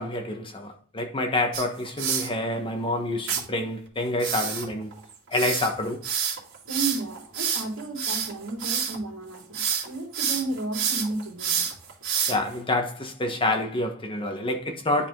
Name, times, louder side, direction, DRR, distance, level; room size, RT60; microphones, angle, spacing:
voice 1, 0.0-4.9 5.3-6.0 12.3-15.1, left 2 dB, 25° left, 1.2 m, -27 dB
sound 1, 1.5-2.3 3.3-3.4 4.2-9.0 9.3-9.9 10.1-12.5, right 7 dB, 65° right, 2.5 m, -28 dB
voice 2, 6.7-11.7, right 3 dB, 80° right, 2.1 m, -33 dB
10.0 x 5.0 x 3.7 m
head